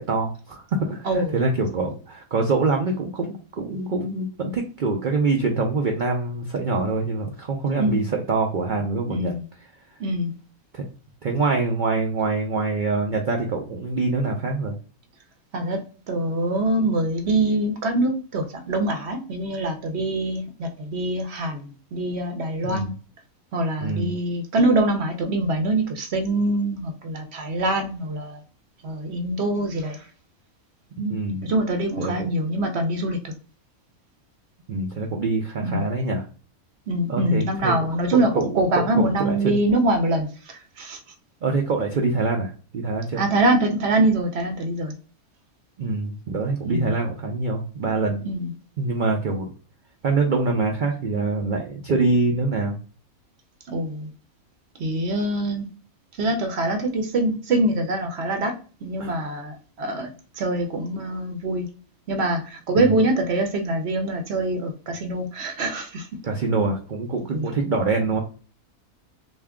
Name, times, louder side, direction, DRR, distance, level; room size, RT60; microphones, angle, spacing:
voice 1, 0.0-9.3 10.7-10.9 11.2-14.8 22.6-22.9 23.8-24.1 31.0-31.5 32.0-32.3 34.7-36.2 37.1-37.7 38.3-38.4 38.8-39.5 41.4-43.2 45.8-48.2 48.8-49.5 50.0-52.8 59.0-59.2 62.7-62.9 66.2-68.2, right 3 dB, 90° right, 2 dB, 0.4 m, -25 dB
voice 2, 1.0-1.4 7.8-8.1 9.1-9.4 10.0-10.3 15.5-15.8 16.1-22.9 23.5-28.4 28.8-30.1 31.4-33.3 35.6-35.9 36.9-41.0 43.2-44.9 46.6-46.9 48.2-48.5 53.7-54.1 54.8-55.7 56.2-58.5 58.8-60.1 60.4-61.7 62.1-66.1 67.3-67.4, right 1 dB, 55° right, 5 dB, 0.9 m, -24 dB
3.4 x 2.6 x 3.5 m, 0.39 s
omnidirectional pair, 1.5 m